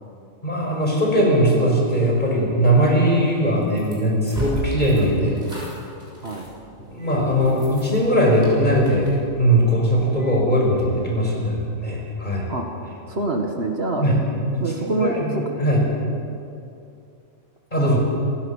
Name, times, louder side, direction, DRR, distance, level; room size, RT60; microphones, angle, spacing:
voice 1, 0.4-5.4 6.9-9.1 9.4-12.5 14.0-14.2 14.5-15.8 17.7-18.0, equal, 30° left, -2 dB, 5.5 m, -20 dB
sound 1, 3.3-11.0, right 1 dB, 30° right, 6.8 m, -36 dB
voice 2, 13.1-14.1 14.6-15.4 17.8-18.0, right 2 dB, 45° right, 2 dB, 1.8 m, -26 dB
28.0 x 16.0 x 7.2 m, 2.6 s
omnidirectional pair, 1.5 m